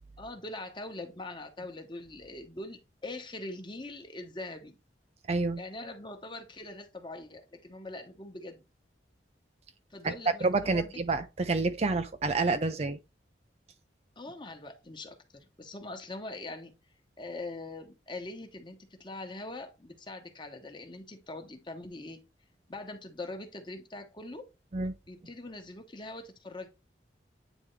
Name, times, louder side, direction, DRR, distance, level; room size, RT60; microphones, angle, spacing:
voice 1, 0.2-4.8 5.6-8.6 9.9-11.0 14.2-16.7 17.2-22.2 22.7-24.5 25.1-26.7, left 2 dB, 25° left, 1.1 m, -42 dB
voice 2, 5.3-5.6 10.0-10.1 10.4-13.0 24.7-24.9, right 3 dB, 35° right, 0.5 m, -28 dB
9.1 x 3.5 x 3.1 m
head